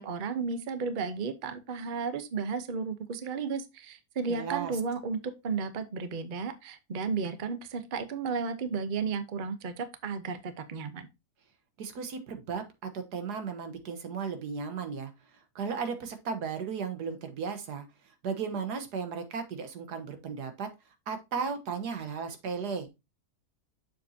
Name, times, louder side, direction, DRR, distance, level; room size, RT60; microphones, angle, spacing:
voice 1, 0.0-11.1, right 5 dB, 40° right, 0.8 m, -33 dB
voice 2, 4.3-4.8 11.8-15.1 15.6-17.9 18.2-20.7 21.1-22.9, right 6 dB, 90° right, 1.7 m, -35 dB
7.0 x 6.8 x 2.7 m
omnidirectional pair, 1.7 m